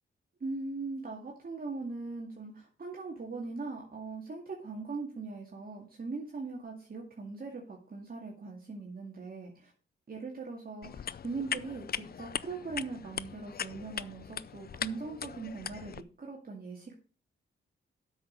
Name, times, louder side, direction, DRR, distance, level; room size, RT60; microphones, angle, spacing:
voice 1, 0.4-9.7 10.1-16.9, right 3 dB, 45° right, -1 dB, 2.1 m, -40 dB
sound 1, 10.8-16.0, left 8 dB, 50° left, 0.5 m, -39 dB
8.4 x 6.3 x 6.4 m, 0.38 s
cardioid pair, 90°, 21 cm